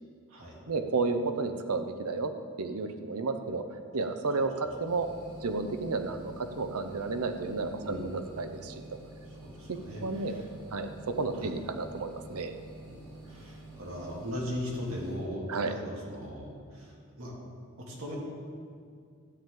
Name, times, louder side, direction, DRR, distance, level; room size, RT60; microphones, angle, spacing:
voice 1, 0.7-2.3 2.6-3.6 3.9-5.1 5.4-8.7 9.7-10.4 10.7-12.5 15.5-15.8, right 3 dB, 85° right, 8 dB, 0.7 m, -32 dB
sound 1, 4.8-15.2, right 1 dB, 25° right, 2.5 m, -49 dB
voice 2, 9.4-10.5 11.3-11.5 12.9-13.0 13.2-15.4 15.7-17.3 17.8-18.2, left 1 dB, 65° right, -4 dB, 2.5 m, -39 dB
13.0 x 9.0 x 3.8 m, 2.3 s
head